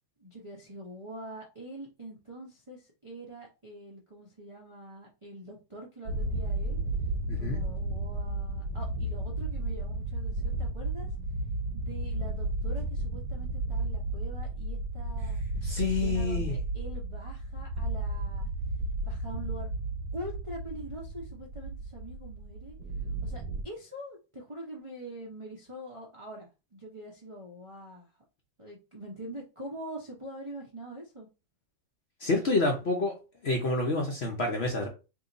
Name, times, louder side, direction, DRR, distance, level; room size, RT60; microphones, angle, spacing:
voice 1, 0.2-6.8 7.3-11.1 11.7-15.4 15.8-18.5 19.0-19.7 20.1-22.8 23.2-28.1 28.6-31.3, right 1 dB, 35° right, 0.4 m, -44 dB
sound 1, 6.1-23.6, right 2 dB, 75° right, 1.1 m, -33 dB
voice 2, 7.3-7.6 15.6-16.6 32.2-33.1 33.4-34.9, left 2 dB, 50° left, 0.8 m, -28 dB
3.1 x 2.8 x 3.9 m
omnidirectional pair, 1.8 m